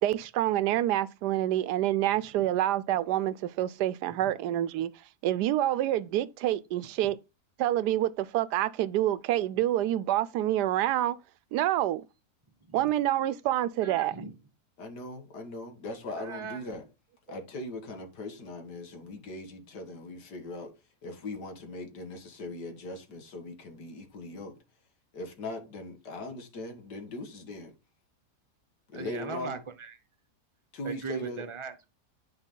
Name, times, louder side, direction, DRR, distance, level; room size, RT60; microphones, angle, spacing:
voice 1, 0.0-4.9 5.2-7.2 7.6-11.2 11.5-12.0 12.7-14.2, right 13 dB, 85° right, 1.2 m, -27 dB
voice 2, 13.8-14.3 16.2-16.6 28.9-29.9 30.8-31.8, right 5 dB, 25° right, 0.7 m, -39 dB
voice 3, 14.8-16.8 17.3-20.7 21.0-24.5 25.1-27.7 28.9-29.6 30.7-31.5, left 2 dB, 90° left, 2.2 m, -40 dB
9.7 x 4.8 x 3.8 m
omnidirectional pair, 1.7 m